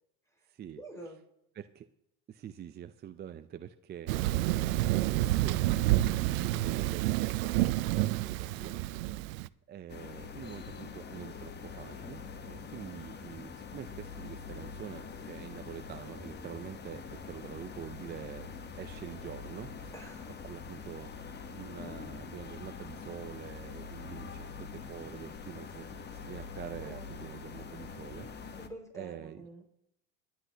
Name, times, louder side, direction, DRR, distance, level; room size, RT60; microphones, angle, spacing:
voice 1, 0.8-1.2 8.4-8.9 19.9-20.4 26.8-27.4 28.6-29.7, right 2 dB, 5° left, 2 dB, 4.9 m, -48 dB
voice 2, 2.4-4.1 4.6-5.6 6.2-8.9 9.7-11.5 11.8-15.0 15.3-17.0 17.3-18.5 18.8-19.7 20.4-21.1 21.5-24.3 24.9-25.9 26.2-28.3 28.9-29.4, right 9 dB, 25° right, 9 dB, 0.5 m, -45 dB
Thunder, 4.1-9.5, right 16 dB, 85° right, 0.6 m, -29 dB
sound 1, 9.9-28.7, left 5 dB, 25° left, 1.1 m, -44 dB
20.5 x 10.5 x 2.8 m, 0.80 s
supercardioid pair, 105°, 40 cm